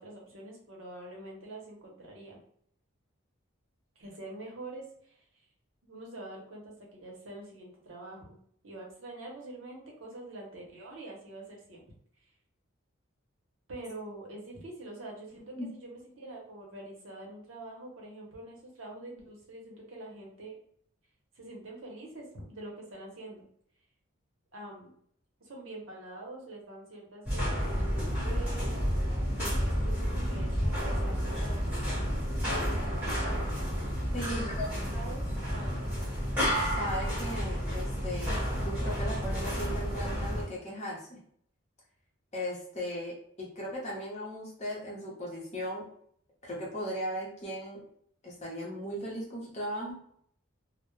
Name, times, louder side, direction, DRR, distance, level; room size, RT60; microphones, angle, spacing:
voice 1, 0.0-2.4 4.0-5.2 5.8-8.4 8.6-11.8 13.7-20.6 21.3-23.4 24.5-24.9 25.4-32.1 32.5-33.5 34.2-34.5 34.9-36.0, right 2 dB, 70° right, -1 dB, 0.8 m, -45 dB
sound 1, 27.3-40.5, equal, 10° right, 1.1 m, -31 dB
voice 2, 34.1-34.7 36.6-41.2 42.3-45.8 46.4-47.8 48.2-49.9, equal, 30° left, -4 dB, 0.7 m, -37 dB
2.1 x 2.1 x 3.0 m, 0.64 s
head